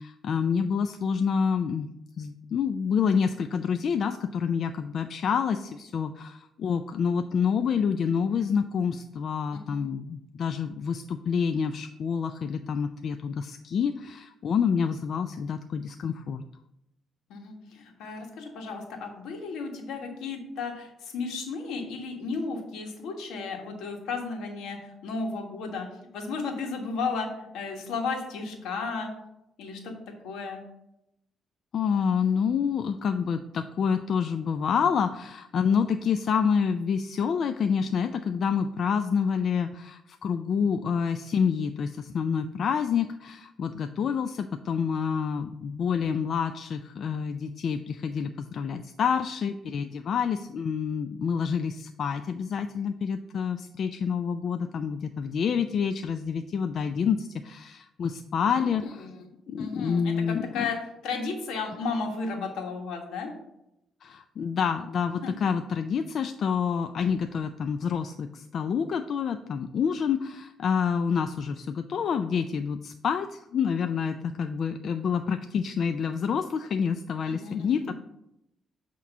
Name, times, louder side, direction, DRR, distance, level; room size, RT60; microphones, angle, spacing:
voice 1, 0.0-1.9 2.2-16.4 31.7-59.1 59.5-60.7 64.0-77.9, left 6 dB, 60° left, 8 dB, 0.3 m, -28 dB
voice 2, 17.3-25.9 26.1-27.3 27.5-29.1 29.6-29.9 30.2-30.6 58.5-58.7 59.0-59.2 59.6-60.1 60.5-60.8 61.0-63.3 65.2-65.3 77.3-77.9, left 4 dB, 85° left, 2 dB, 1.4 m, -34 dB
8.3 x 3.0 x 5.4 m, 0.85 s
cardioid pair, 90°, 0 cm